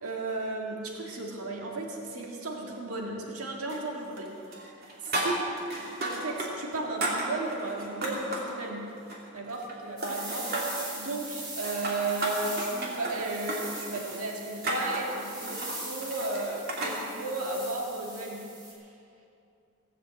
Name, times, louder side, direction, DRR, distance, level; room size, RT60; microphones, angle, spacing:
voice 1, 0.0-4.3 5.0-5.4 6.0-9.0 9.3-18.5 18.8-18.9, right 2 dB, 90° right, -1 dB, 1.9 m, -34 dB
sound 1, 3.7-4.3 4.5-6.5 6.8-8.5 9.0-9.8 10.0-10.9 11.5-17.0, right 1 dB, 45° right, 2.5 m, -34 dB
sound 2, 10.0-18.7, right 1 dB, 20° right, 3.1 m, -41 dB
17.5 x 7.9 x 7.7 m, 2.6 s
head